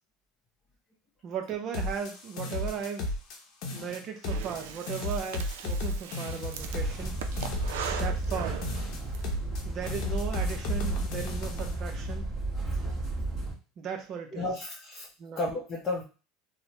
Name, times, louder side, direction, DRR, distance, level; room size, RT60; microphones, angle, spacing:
voice 1, 1.2-3.1 3.7-7.1 7.9-8.6 9.6-12.3 13.8-14.5 15.2-15.4, right 7 dB, 40° right, 5 dB, 0.6 m, -36 dB
sound 1, 1.7-3.4 3.6-4.6 4.9-8.4 8.6-9.6 9.9-11.7, left 2 dB, 55° left, 0.7 m, -34 dB
Breathing, 4.2-9.2, right 7 dB, 90° right, 0.4 m, -40 dB
sound 2, 6.5-13.5, right 2 dB, 25° right, 1.3 m, -34 dB
voice 2, 14.3-15.1 15.3-16.0, left 2 dB, 20° left, -4 dB, 0.6 m, -32 dB
3.0 x 2.0 x 2.8 m, 0.33 s
supercardioid pair, 135°, 0 cm